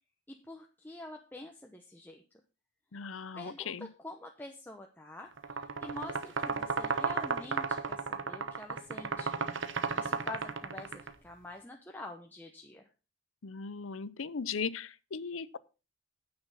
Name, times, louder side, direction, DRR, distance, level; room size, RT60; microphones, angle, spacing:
voice 1, 0.3-2.2 3.3-5.3 5.8-9.3 10.0-12.8, left 2 dB, 10° left, 0.9 m, -46 dB
voice 2, 2.9-3.9 13.4-15.6, left 5 dB, 85° left, 0.7 m, -38 dB
sound 1, 5.4-11.1, right 5 dB, 70° right, 1.0 m, -34 dB
9.6 x 7.8 x 5.6 m
head